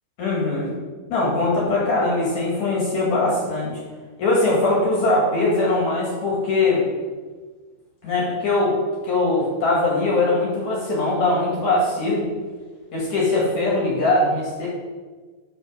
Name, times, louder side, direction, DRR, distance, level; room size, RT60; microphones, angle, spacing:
voice 1, 0.2-0.7 1.1-3.7 4.2-6.8 8.0-8.7 9.0-12.2 12.9-14.7, left 2 dB, 50° left, -4 dB, 2.8 m, -21 dB
12.5 x 4.4 x 6.6 m, 1.4 s
omnidirectional pair, 5.4 m